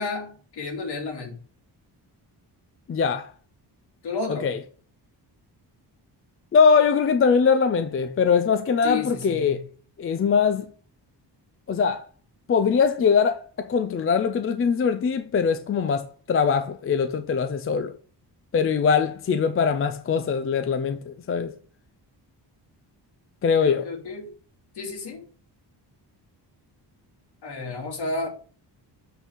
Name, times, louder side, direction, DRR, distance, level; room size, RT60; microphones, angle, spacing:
voice 1, 0.0-1.3 4.0-4.5 8.8-9.6 23.6-24.3 24.8-25.2 27.4-28.3, left 3 dB, 65° left, 2.4 m, -31 dB
voice 2, 2.9-3.3 4.3-4.6 6.5-9.6 10.0-10.7 11.7-12.0 12.5-17.9 18.5-21.5 23.4-23.9, left 6 dB, 35° left, 0.4 m, -22 dB
8.2 x 4.0 x 4.5 m
wide cardioid pair, 180°, 42 cm